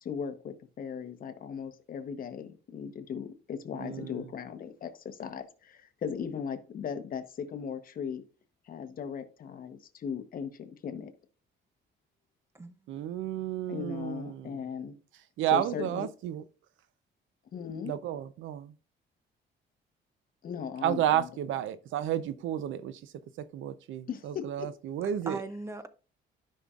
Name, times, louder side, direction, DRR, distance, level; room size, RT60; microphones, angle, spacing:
voice 1, 0.0-8.2 8.7-11.1 13.7-15.0 15.5-16.1 17.5-18.0 20.4-21.3 24.1-24.7, left 7 dB, 45° left, 1.0 m, -38 dB
voice 2, 3.7-4.3 12.9-14.6 15.4-16.4 17.8-18.7 20.8-23.0 23.4-25.4, right 11 dB, 85° right, 0.6 m, -32 dB
voice 3, 12.5-13.3 25.0-25.9, right 3 dB, 15° right, 0.5 m, -41 dB
12.5 x 5.6 x 2.4 m
cardioid pair, 145°, 20 cm